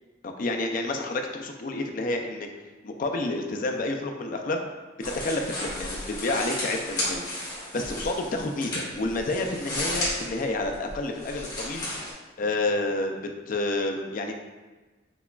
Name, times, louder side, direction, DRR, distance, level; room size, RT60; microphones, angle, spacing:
voice 1, 0.2-2.5 2.8-4.6 5.0-7.2 7.7-11.9 12.4-13.1 13.5-14.3, left 2 dB, 50° left, 4 dB, 0.4 m, -29 dB
sound 1, 5.0-12.1, left 1 dB, 20° left, 1.3 m, -33 dB
5.9 x 2.2 x 2.3 m, 1.2 s
head